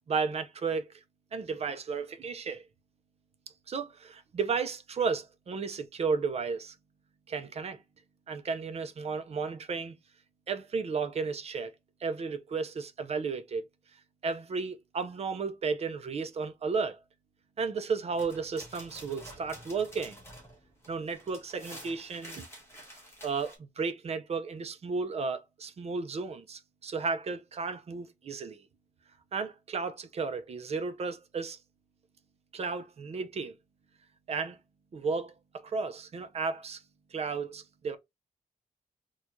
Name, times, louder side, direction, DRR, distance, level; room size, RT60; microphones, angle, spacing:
voice 1, 0.1-0.9 1.3-2.6 3.7-6.7 7.3-7.8 8.3-10.0 10.5-11.7 12.0-13.6 14.2-17.0 17.6-20.2 20.9-22.5 23.2-28.6 29.3-31.6 32.5-33.5 34.3-34.6 34.9-35.3 35.6-36.8 37.1-38.0, right 5 dB, 50° right, 0.5 m, -33 dB
sound 1, 18.1-23.6, equal, 20° left, 1.5 m, -49 dB
4.4 x 2.4 x 2.6 m
wide cardioid pair, 180°, 14 cm